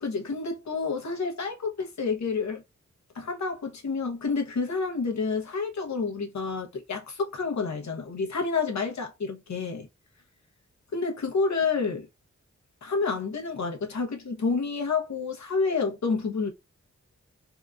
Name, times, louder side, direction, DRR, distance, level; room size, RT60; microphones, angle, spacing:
voice 1, 0.0-2.6 3.1-9.9 10.9-12.1 12.8-16.5, left 4 dB, 70° left, 0.9 m, -29 dB
2.8 x 2.4 x 2.3 m
cardioid pair, 55°, 30 cm